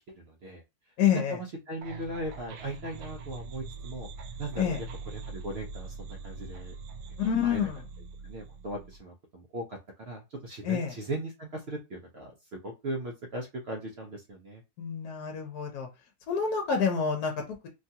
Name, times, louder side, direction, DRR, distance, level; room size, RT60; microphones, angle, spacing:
voice 1, 0.1-0.6 1.1-4.1 4.4-4.8 5.1-6.7 7.4-7.6 8.2-14.6, right 1 dB, 65° right, 1 dB, 0.6 m, -38 dB
voice 2, 1.0-1.4 4.6-4.8 7.2-7.8 10.6-10.9 14.8-15.9 16.3-17.7, left 7 dB, 70° left, 3 dB, 1.2 m, -28 dB
sound 1, 1.8-9.0, right 4 dB, 90° right, 1.2 m, -43 dB
3.2 x 2.3 x 2.7 m, 0.25 s
omnidirectional pair, 1.7 m